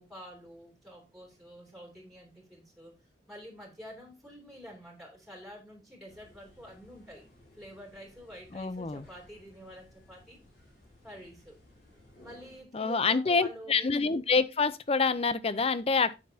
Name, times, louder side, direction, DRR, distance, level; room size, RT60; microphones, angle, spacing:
voice 1, 0.0-2.9 3.3-7.3 7.5-10.4 11.0-11.6 12.2-13.9, equal, ahead, 2.8 m, -48 dB
sound 1, 6.1-12.6, left 1 dB, 65° left, 5.0 m, -59 dB
voice 2, 8.5-9.0 12.7-16.1, left 4 dB, 35° left, 0.6 m, -27 dB
9.7 x 7.5 x 2.8 m
head